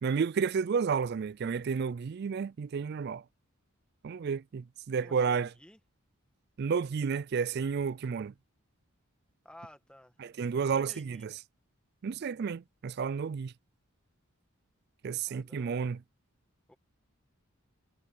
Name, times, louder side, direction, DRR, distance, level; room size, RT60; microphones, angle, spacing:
voice 1, 0.0-3.2 4.0-5.5 6.6-8.3 10.2-11.3 12.0-13.5 15.0-16.0, right 6 dB, 50° right, 0.3 m, -31 dB
voice 2, 5.0-5.8 9.4-10.2 10.5-11.3 15.3-15.9 16.7-16.8, left 1 dB, 5° left, 1.4 m, -54 dB
head